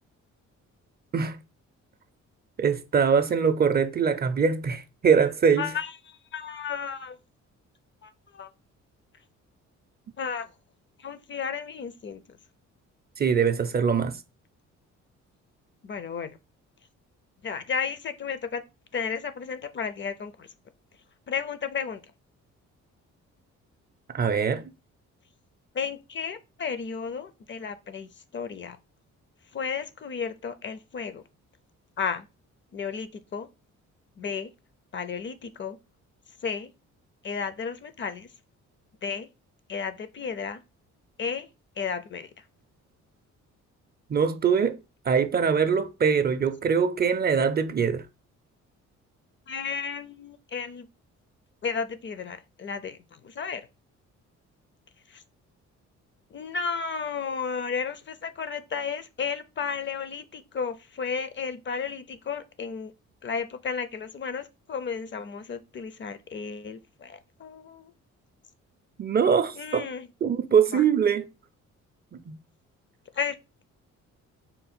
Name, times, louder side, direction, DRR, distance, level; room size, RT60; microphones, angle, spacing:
voice 1, 2.6-5.7 13.2-14.2 24.1-24.7 44.1-44.8 45.0-48.1 69.0-69.9 70.2-71.2 72.3-72.4, right 6 dB, 35° right, 0.4 m, -23 dB
voice 2, 5.6-7.2 8.0-8.5 10.2-10.5 11.0-12.4 15.8-16.4 17.4-18.6 18.9-20.5 21.3-22.0 25.7-28.8 29.5-31.2 32.0-32.3 32.7-33.5 34.2-34.5 34.9-35.8 36.4-36.7 37.2-38.3 39.0-39.3 39.7-40.6 41.2-41.5 41.8-42.4 49.5-50.9 51.6-53.7 55.1-55.2 56.3-62.9 63.2-67.9 69.6-70.1 70.7-70.8 73.1-73.4, left 6 dB, 40° left, 0.5 m, -33 dB
3.8 x 2.2 x 4.2 m
cardioid pair, 90°, 30 cm